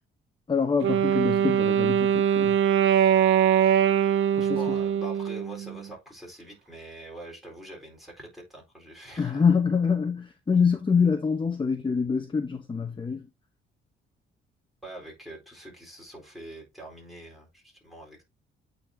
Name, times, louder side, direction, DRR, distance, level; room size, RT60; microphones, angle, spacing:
voice 1, 0.5-2.5 4.4-4.6 9.2-13.2, left 5 dB, 25° left, 1.0 m, -25 dB
Wind instrument woodwind instrument, 0.8-5.9, right 9 dB, 75° right, 0.6 m, -22 dB
voice 2, 4.4-9.4 14.8-18.2, right 1 dB, ahead, 4.1 m, -44 dB
8.6 x 4.0 x 2.8 m
cardioid pair, 90°, 20 cm